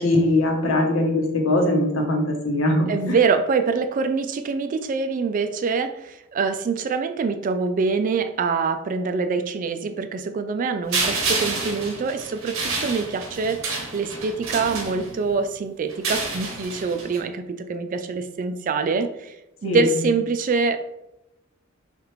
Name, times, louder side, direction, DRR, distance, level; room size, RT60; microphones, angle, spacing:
voice 1, 0.0-3.2 19.6-20.0, left 1 dB, 70° left, 2 dB, 0.9 m, -21 dB
voice 2, 2.9-19.3 19.6-20.8, right 4 dB, 40° right, 8 dB, 0.3 m, -25 dB
sound 1, 10.9-15.4 15.9-17.2, right 3 dB, 65° right, 0.9 m, -29 dB
6.2 x 2.4 x 3.1 m, 0.88 s
head